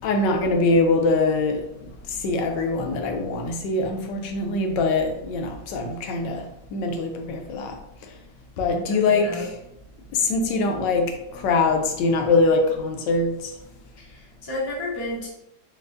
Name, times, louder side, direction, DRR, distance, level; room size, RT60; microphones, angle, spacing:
voice 1, 0.0-1.6 2.1-6.5 6.7-7.8 8.6-9.5 10.1-13.5, left 3 dB, 80° left, 3 dB, 1.2 m, -23 dB
voice 2, 8.6-9.5 14.0-15.3, left 1 dB, 25° left, -5 dB, 0.4 m, -32 dB
4.5 x 2.3 x 2.5 m, 0.83 s
omnidirectional pair, 2.0 m